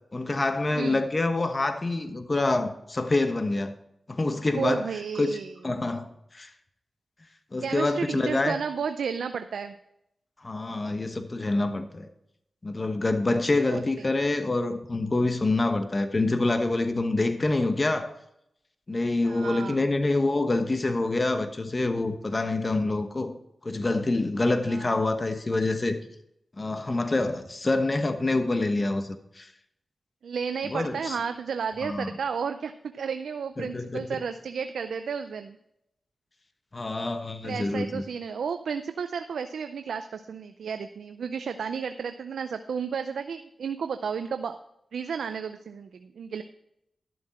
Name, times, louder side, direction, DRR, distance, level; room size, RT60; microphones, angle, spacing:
voice 1, 0.1-3.7 4.1-4.9 5.2-6.1 6.3-6.5 7.5-8.6 10.4-12.1 12.6-18.1 18.9-23.3 23.6-26.0 26.6-29.5 30.6-31.2 31.8-32.1 33.6-34.2 36.7-38.0, left 2 dB, 40° left, 8 dB, 1.1 m, -26 dB
voice 2, 4.5-5.5 7.6-9.8 13.7-14.1 19.2-19.9 24.7-25.0 30.2-35.6 37.4-44.6 44.9-46.4, right 6 dB, 90° right, 8 dB, 0.5 m, -32 dB
12.0 x 7.6 x 4.3 m, 0.79 s
cardioid pair, 50°, 0 cm